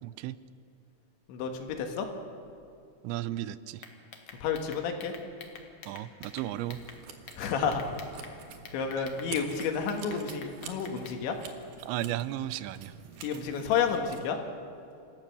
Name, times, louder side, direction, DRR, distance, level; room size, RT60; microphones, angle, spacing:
voice 1, 0.0-0.4 3.0-3.8 5.9-6.8 11.8-12.9, right 14 dB, 85° right, 15 dB, 2.9 m, -34 dB
voice 2, 1.3-2.1 4.4-5.1 7.4-7.8 8.2-8.3 8.7-11.3 13.2-14.4, left 6 dB, 85° left, 4 dB, 4.0 m, -30 dB
sound 1, 3.8-7.0 7.3-8.3 8.6-11.2, left 6 dB, 55° left, 2.1 m, -47 dB
sound 2, 6.3-14.3, right 7 dB, 60° right, 2.5 m, -48 dB
26.5 x 15.0 x 6.8 m, 2.6 s
omnidirectional pair, 5.1 m